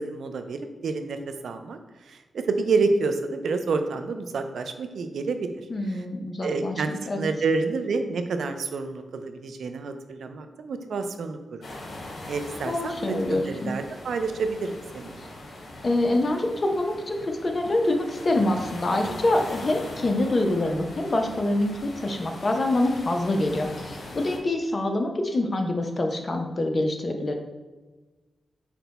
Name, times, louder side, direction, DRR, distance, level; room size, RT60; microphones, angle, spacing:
voice 1, 0.0-6.0 6.4-11.6 12.3-15.2, right 4 dB, 80° right, 7 dB, 0.4 m, -29 dB
voice 2, 5.7-7.3 12.7-13.7 15.8-27.3, left 1 dB, 45° left, 4 dB, 0.7 m, -25 dB
sound 1, 11.6-24.4, left 1 dB, 80° left, 1.0 m, -41 dB
5.8 x 2.2 x 4.0 m, 1.3 s
cardioid pair, 70°, 0 cm